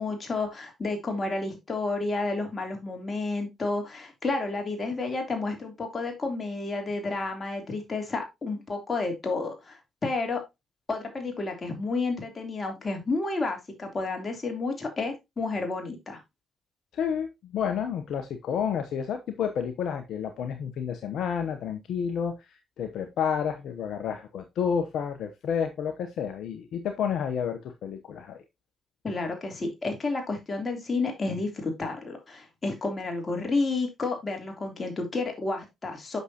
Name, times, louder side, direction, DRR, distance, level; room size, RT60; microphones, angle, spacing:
voice 1, 0.0-10.4 10.9-16.2 29.0-36.2, left 3 dB, 40° left, 3.2 m, -31 dB
voice 2, 16.9-22.5 22.8-28.4, left 7 dB, 75° left, 0.9 m, -30 dB
8.0 x 6.4 x 2.9 m
supercardioid pair, 50°, 0 cm